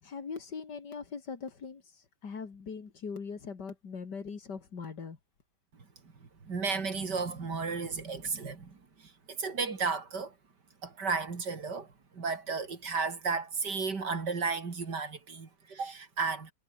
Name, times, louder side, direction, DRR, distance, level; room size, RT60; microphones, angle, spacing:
voice 1, 0.0-5.2, left 5 dB, 85° left, 3.0 m, -41 dB
voice 2, 6.4-8.8 9.3-10.3 10.8-11.9 12.1-16.5, right 4 dB, 85° right, 3.6 m, -33 dB
omnidirectional pair, 1.8 m